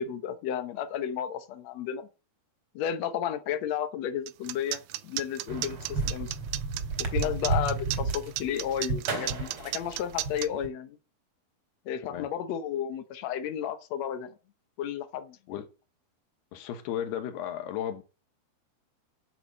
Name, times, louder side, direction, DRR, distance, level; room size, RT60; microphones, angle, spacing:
voice 1, 0.0-2.1 2.7-6.4 7.0-11.0 11.8-14.4 14.8-15.4, left 9 dB, 70° left, 1.6 m, -33 dB
sound 1, 4.3-10.5, right 17 dB, 80° right, 2.5 m, -34 dB
sound 2, 5.5-10.7, right 3 dB, 40° right, 2.9 m, -32 dB
voice 2, 16.5-18.0, left 10 dB, 85° left, 3.3 m, -35 dB
9.5 x 6.8 x 7.7 m
omnidirectional pair, 4.5 m